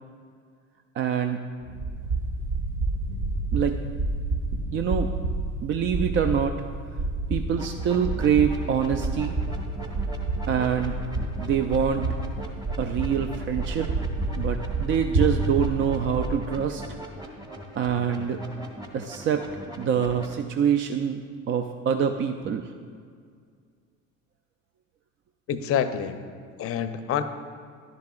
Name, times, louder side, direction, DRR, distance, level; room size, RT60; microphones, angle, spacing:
voice 1, 1.0-1.4 3.5-3.8 4.7-5.1 5.6-6.6 7.3-9.4 10.5-11.0 11.4-12.1 12.8-13.9 14.4-16.8 17.8-18.4 18.9-19.4 19.8-22.7, right 8 dB, 30° right, 7 dB, 0.4 m, -25 dB
sound 1, 1.6-16.3, right 2 dB, 50° right, 1.4 m, -29 dB
sound 2, 7.6-20.4, equal, 10° right, 1.2 m, -41 dB
voice 2, 25.5-26.2 26.6-27.2, left 8 dB, 35° left, 11 dB, 0.6 m, -27 dB
11.0 x 10.5 x 2.4 m, 2.1 s
hypercardioid pair, 65°, 40 cm